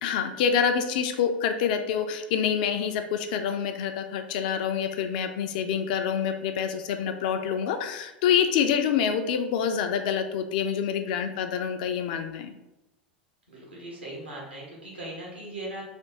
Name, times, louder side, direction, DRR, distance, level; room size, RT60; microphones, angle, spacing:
voice 1, 0.0-12.5, left 7 dB, 55° left, 6 dB, 0.3 m, -26 dB
voice 2, 13.5-15.8, right 1 dB, 90° right, -4 dB, 1.2 m, -39 dB
3.3 x 2.5 x 2.8 m, 0.96 s
figure-of-eight pair, 85°, 5 cm